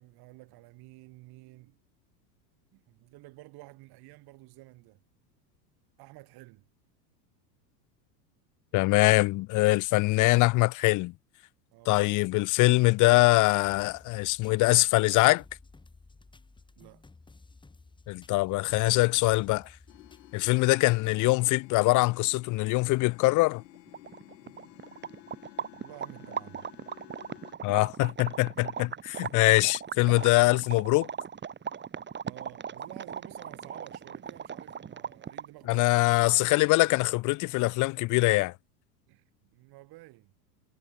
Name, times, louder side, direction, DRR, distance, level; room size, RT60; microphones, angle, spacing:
voice 1, 0.0-1.7 2.7-5.0 6.0-6.6 11.7-12.1 16.8-17.0 25.8-26.7 32.2-36.2 39.1-39.2 39.5-40.3, right 21 dB, 50° right, 3.4 m, -51 dB
voice 2, 8.7-11.1 11.9-15.4 18.1-19.7 20.3-23.6 27.6-31.1 35.7-38.5, left 22 dB, 40° left, 0.7 m, -23 dB
sound 1, 13.6-21.2, left 3 dB, 10° left, 2.9 m, -56 dB
sound 2, 19.9-27.5, left 20 dB, 75° left, 3.0 m, -52 dB
sound 3, 23.6-23.7 23.9-35.6, right 7 dB, 20° right, 2.9 m, -39 dB
supercardioid pair, 125°, 50 cm